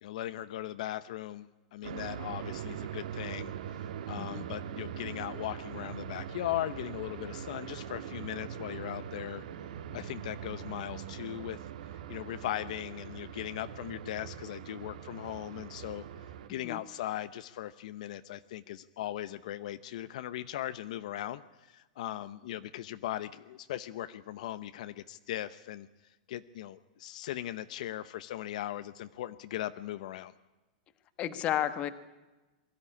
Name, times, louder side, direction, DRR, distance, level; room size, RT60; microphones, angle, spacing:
voice 1, 0.0-9.4 9.9-11.7 12.1-30.3, left 13 dB, 60° left, 12 dB, 0.7 m, -39 dB
sound 1, 1.8-16.5, right 9 dB, 70° right, 1.6 m, -42 dB
voice 2, 31.2-31.9, left 11 dB, 25° left, 12 dB, 1.2 m, -32 dB
22.5 x 13.5 x 9.8 m, 1.1 s
supercardioid pair, 160°, 4 cm